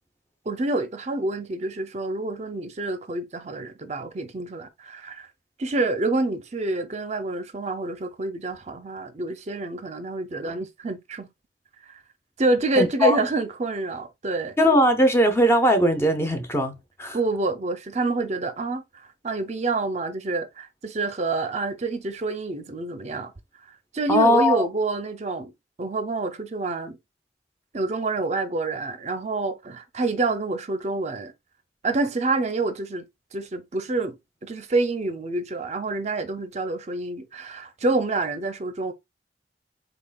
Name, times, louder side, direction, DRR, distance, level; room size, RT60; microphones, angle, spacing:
voice 1, 0.5-5.3 5.6-11.3 11.9-12.0 12.4-14.6 17.1-23.3 23.7-25.5 25.8-27.0 27.7-31.3 31.8-33.1 33.3-34.1 34.4-38.9, right 3 dB, 40° right, 0.6 m, -27 dB
voice 2, 12.8-13.2 14.6-16.7 17.0-17.2 24.1-24.6, equal, 15° left, 0.7 m, -19 dB
4.0 x 3.6 x 2.3 m
head